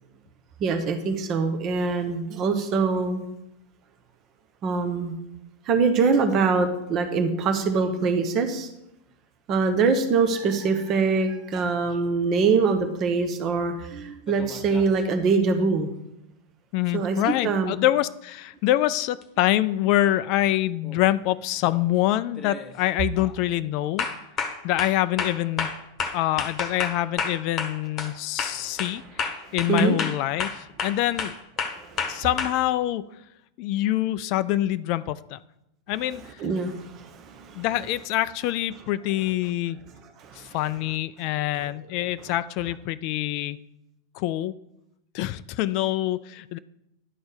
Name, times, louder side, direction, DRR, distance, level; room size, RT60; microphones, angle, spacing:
voice 1, 0.6-3.2 4.6-5.1 5.6-8.7 9.5-15.9 16.9-17.7 28.5-28.8 29.4-30.0 31.7-32.2 36.4-37.6 40.2-40.6 41.6-41.7, right 4 dB, 35° right, 6 dB, 1.0 m, -24 dB
sound 1, 14.3-15.0 19.2-19.3 20.8-21.1 21.6-21.9 22.4-22.7 23.1-23.4 24.0-28.1 28.4-32.5, left 5 dB, 25° left, 1.2 m, -31 dB
voice 2, 16.7-24.1 24.6-25.7 26.1-31.3 32.1-33.0 33.6-35.4 35.9-36.4 37.5-39.8 40.3-43.6 44.1-44.5 45.1-46.6, left 14 dB, 45° left, 14 dB, 0.3 m, -25 dB
11.0 x 4.3 x 6.7 m, 0.85 s
figure-of-eight pair, 90°, 0 cm